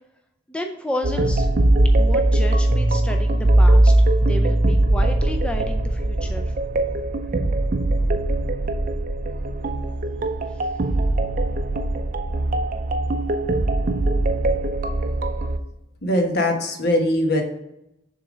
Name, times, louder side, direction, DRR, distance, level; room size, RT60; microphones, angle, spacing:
voice 1, 0.5-1.5 2.0-6.5 10.5-10.7, equal, 5° left, 4 dB, 0.4 m, -32 dB
sound 1, 1.0-15.6, right 1 dB, 45° right, 0.5 m, -20 dB
voice 2, 16.0-17.4, left 1 dB, 55° left, 3 dB, 1.2 m, -21 dB
6.8 x 3.8 x 6.1 m, 0.85 s
head